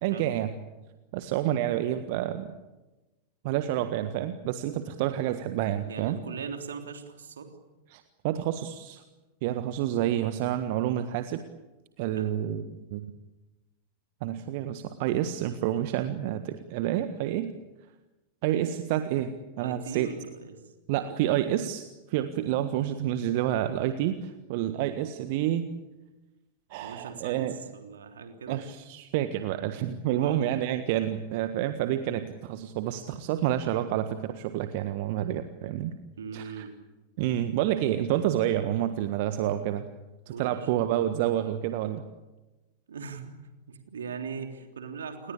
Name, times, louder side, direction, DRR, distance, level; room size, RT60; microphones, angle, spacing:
voice 1, 0.0-0.5 1.1-2.5 3.4-6.2 7.9-9.0 9.4-11.4 12.0-12.6 12.9-13.1 14.2-17.5 18.4-20.1 20.9-25.7 26.7-27.5 28.5-35.9 36.3-36.6 37.2-39.9 40.4-42.0, right 12 dB, 50° right, 9 dB, 1.5 m, -29 dB
voice 2, 5.9-7.5 12.1-12.3 19.6-20.6 26.8-28.6 30.1-30.5 36.2-36.7 40.3-40.7 42.9-43.4 43.7-45.3, right 5 dB, 65° right, 5 dB, 3.4 m, -39 dB
29.0 x 20.5 x 8.6 m, 1.1 s
figure-of-eight pair, 90°, 0 cm